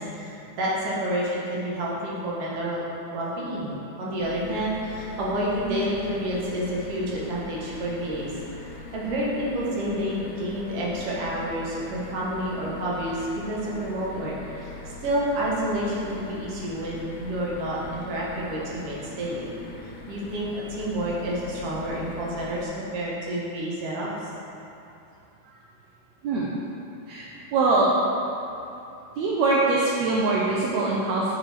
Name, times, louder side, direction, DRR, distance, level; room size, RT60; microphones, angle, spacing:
voice 1, 0.0-2.8 3.1-19.5 20.1-24.3 25.4-25.6, right 1 dB, 60° right, -5 dB, 2.2 m, -29 dB
sound 1, 4.2-22.7, left 3 dB, 75° left, 2.1 m, -41 dB
voice 2, 27.1-27.9 29.2-31.3, right 3 dB, 75° right, -5 dB, 1.9 m, -23 dB
11.0 x 4.8 x 3.4 m, 2.8 s
omnidirectional pair, 3.4 m